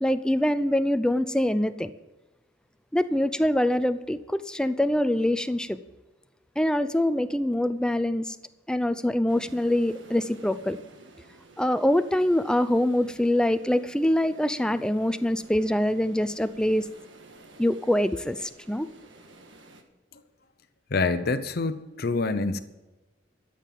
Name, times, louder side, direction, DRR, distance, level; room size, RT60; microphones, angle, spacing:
voice 1, 0.0-1.9 2.9-5.8 6.6-8.4 8.7-10.8 11.6-16.9 17.6-18.9, left 1 dB, 5° left, 12 dB, 0.5 m, -24 dB
sound 1, 9.3-19.8, right 2 dB, 80° right, 1.5 m, -52 dB
voice 2, 20.9-22.6, left 3 dB, 55° left, 10 dB, 0.7 m, -26 dB
13.0 x 7.4 x 7.5 m, 1.1 s
head